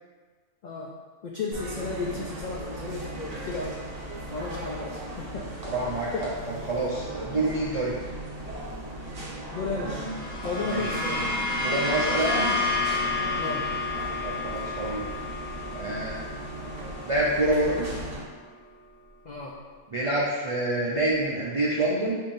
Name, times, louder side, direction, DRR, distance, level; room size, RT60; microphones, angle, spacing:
voice 1, 1.2-3.8 4.3-5.4 6.1-6.3 9.5-10.0 10.4-11.4 13.3-13.7 19.2-19.5, left 3 dB, 80° left, -2 dB, 0.4 m, -33 dB
sound 1, 1.5-18.2, right 1 dB, 35° right, 0.8 m, -38 dB
voice 2, 5.6-7.9 10.7-10.9 11.6-12.5 14.2-15.1 15.7-16.2 17.1-17.9 19.9-22.2, right 1 dB, 60° right, -6 dB, 0.3 m, -27 dB
sound 2, 9.8-18.3, left 3 dB, 45° left, 1.3 m, -30 dB
6.9 x 2.7 x 2.6 m, 1.5 s
omnidirectional pair, 1.3 m